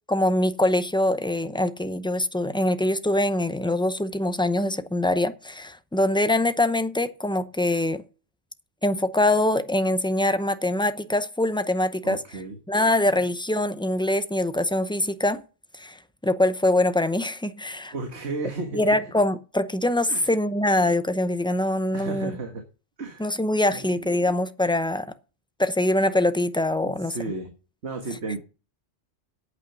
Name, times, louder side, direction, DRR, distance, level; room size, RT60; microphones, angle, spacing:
voice 1, 0.1-8.0 8.8-12.4 12.7-15.4 15.8-16.0 16.2-17.9 18.7-22.4 23.2-25.1 25.6-27.2, left 1 dB, 5° left, 0.6 m, -23 dB
voice 2, 12.0-12.6 17.9-19.0 20.1-20.3 20.8-21.0 21.9-22.6 23.0-23.3 23.7-24.3 26.8-27.5 27.8-28.4, right 3 dB, 85° right, 1.8 m, -34 dB
8.8 x 8.3 x 6.9 m
omnidirectional pair, 1.1 m